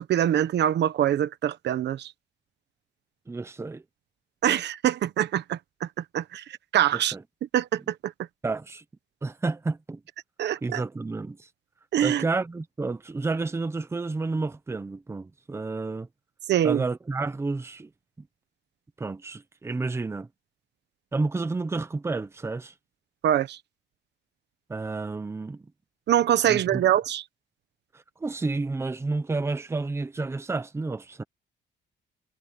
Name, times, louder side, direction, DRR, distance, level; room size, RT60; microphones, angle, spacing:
voice 1, 0.0-2.1 4.4-5.9 6.1-6.4 6.7-7.1 7.5-8.1 10.4-10.8 11.9-12.2 16.5-16.8 23.2-23.6 26.1-27.2, right 11 dB, 60° right, 1.2 m, -24 dB
voice 2, 3.3-3.8 6.9-7.2 8.4-8.8 9.2-10.0 10.6-11.4 12.0-16.1 16.6-17.9 19.0-20.3 21.1-22.7 24.7-25.7 26.5-26.8 27.9-31.2, right 3 dB, 15° right, 0.9 m, -30 dB
cardioid pair, 170°, 20 cm